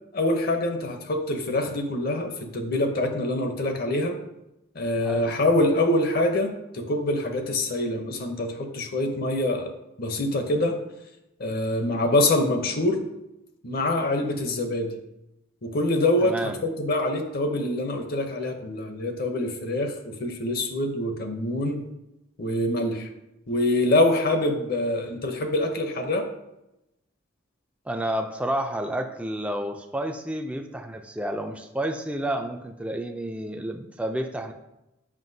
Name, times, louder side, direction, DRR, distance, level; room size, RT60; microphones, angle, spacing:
voice 1, 0.1-4.2 4.7-9.7 10.0-10.8 11.4-13.0 13.6-14.9 15.6-21.8 22.4-23.1 23.5-26.3, left 1 dB, 50° left, 5 dB, 0.7 m, -25 dB
voice 2, 5.0-5.3 16.2-16.6 27.9-34.5, right 1 dB, 5° right, 4 dB, 0.3 m, -30 dB
7.5 x 5.5 x 2.7 m, 0.91 s
head